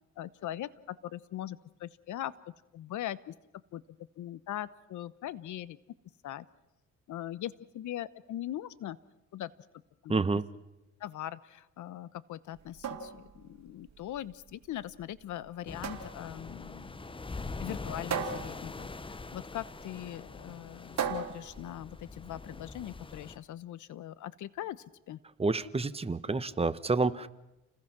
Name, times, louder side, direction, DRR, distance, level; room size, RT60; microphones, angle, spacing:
voice 1, 0.2-2.3 2.7-3.3 3.7-3.8 4.2-5.8 6.2-6.5 7.1-9.0 9.3-9.5 10.0-10.2 11.0-16.9 17.6-25.2, left 12 dB, 75° left, 17 dB, 1.1 m, -41 dB
voice 2, 10.1-10.4 25.4-27.3, right 3 dB, 20° right, 12 dB, 1.2 m, -29 dB
sound 1, 12.5-22.5, right 6 dB, 60° right, 2.9 m, -40 dB
sound 2, 15.7-23.4, left 3 dB, 15° left, 0.9 m, -43 dB
30.0 x 20.0 x 6.1 m, 0.93 s
cardioid pair, 90°, 30 cm